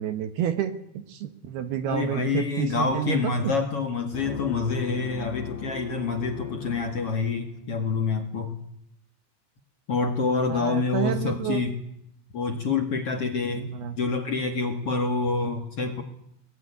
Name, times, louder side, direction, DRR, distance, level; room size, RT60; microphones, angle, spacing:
voice 1, 0.0-3.5 10.5-11.6 13.6-14.0, right 10 dB, 70° right, 10 dB, 2.9 m, -30 dB
voice 2, 1.9-8.6 9.9-11.8 12.3-16.0, left 4 dB, 60° left, 5 dB, 1.6 m, -27 dB
sound 1, 4.1-7.7, left 6 dB, 90° left, 1.5 m, -38 dB
23.0 x 19.5 x 9.7 m, 0.77 s
omnidirectional pair, 5.3 m